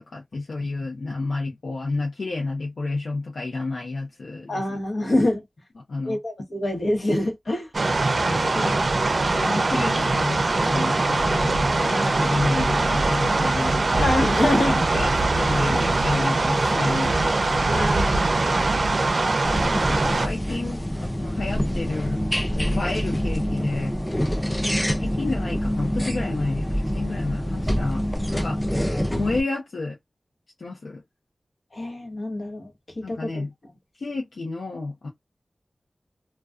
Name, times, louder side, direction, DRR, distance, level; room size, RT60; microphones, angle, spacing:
voice 1, 0.1-4.8 5.9-6.2 8.2-8.8 9.3-14.1 14.7-17.1 19.9-22.2 22.6-23.9 24.4-24.6 25.0-28.0 28.3-28.6 29.1-30.0 30.6-31.0 33.0-33.5 34.0-35.1, left 3 dB, 90° left, 0.6 m, -30 dB
voice 2, 4.5-5.4 6.1-7.7 11.8-12.0 14.0-15.0 15.6-15.8 17.6-18.4 24.6-24.9 31.7-32.7 33.0-33.4, left 1 dB, 65° left, 0.9 m, -26 dB
sound 1, 7.7-20.3, right 2 dB, 65° right, 0.4 m, -22 dB
sound 2, 19.4-29.4, equal, 10° left, 0.4 m, -26 dB
2.3 x 2.2 x 2.3 m
cardioid pair, 40°, 0 cm